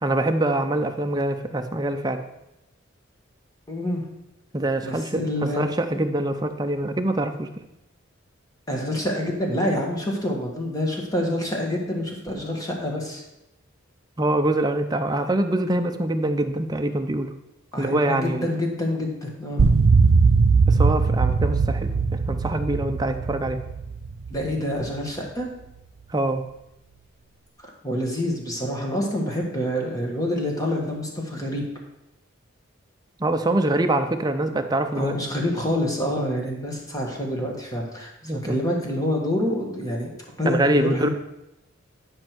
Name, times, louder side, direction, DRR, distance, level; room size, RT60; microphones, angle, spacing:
voice 1, 0.0-2.2 4.5-7.5 14.2-17.3 17.8-18.5 20.7-23.6 26.1-26.4 33.2-35.1 38.2-38.6 40.4-41.1, right 1 dB, 20° right, 6 dB, 0.5 m, -24 dB
voice 2, 3.7-4.0 4.8-5.7 8.7-13.2 17.7-19.6 24.3-25.5 27.6-31.7 34.9-40.1 40.4-41.1, left 1 dB, 15° left, 0 dB, 1.4 m, -27 dB
sound 1, 19.6-25.0, right 4 dB, 75° right, 0.5 m, -20 dB
9.8 x 5.3 x 4.5 m, 0.89 s
head